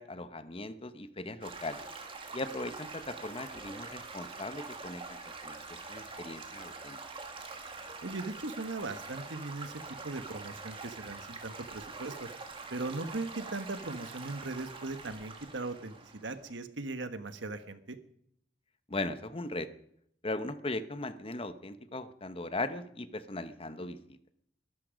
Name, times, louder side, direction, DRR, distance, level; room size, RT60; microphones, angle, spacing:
voice 1, 0.0-1.8 2.3-7.0 18.9-19.7 20.2-24.2, left 2 dB, 30° left, 12 dB, 0.9 m, -38 dB
Stream / Gurgling / Trickle dribble, 1.4-16.5, right 4 dB, 30° right, 2.1 m, -45 dB
voice 2, 8.0-12.3 12.7-18.0, right 2 dB, 80° right, 10 dB, 1.4 m, -39 dB
21.5 x 12.5 x 5.2 m, 0.70 s
head